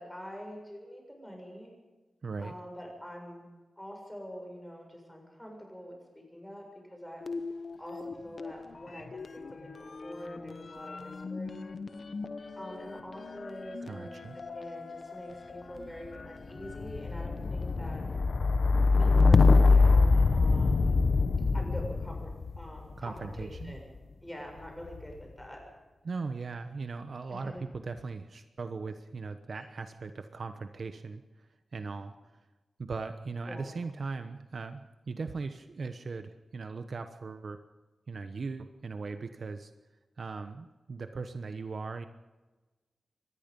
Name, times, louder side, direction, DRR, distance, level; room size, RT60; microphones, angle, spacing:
voice 1, 0.0-1.7 2.4-3.5 3.8-7.2 7.8-11.8 12.6-14.2 14.5-18.0 18.9-21.1 21.5-22.3 22.6-23.9 24.2-25.6 27.3-27.6 29.5-29.7 33.5-33.7, equal, 5° left, 1 dB, 7.2 m, -45 dB
voice 2, 2.2-2.5 13.8-14.4 23.0-23.8 26.0-32.2 32.8-37.6 38.1-39.7 40.2-42.1, right 4 dB, 55° right, 8 dB, 1.1 m, -39 dB
sound 1, 7.2-8.6 8.8-23.9 24.6-25.2, left 4 dB, 45° left, 1.0 m, -27 dB
24.5 x 20.0 x 5.5 m, 1.2 s
wide cardioid pair, 145°, 0 cm